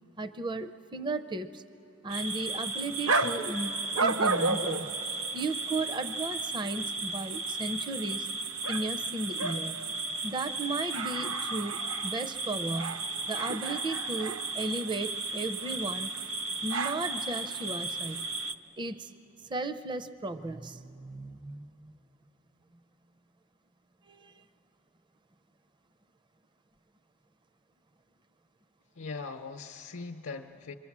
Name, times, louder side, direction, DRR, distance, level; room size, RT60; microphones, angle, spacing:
voice 1, 0.2-1.6 2.0-4.9 5.3-8.3 8.7-9.8 10.2-13.0 13.3-16.1 16.6-18.3 18.8-19.1 19.5-22.0 24.1-24.4, right 2 dB, 20° right, 12 dB, 0.5 m, -35 dB
sound 1, 2.1-18.5, right 3 dB, 75° right, 0.7 m, -33 dB
voice 2, 28.9-30.7, left 4 dB, 75° left, 3 dB, 0.7 m, -40 dB
27.5 x 23.0 x 7.3 m, 2.9 s
head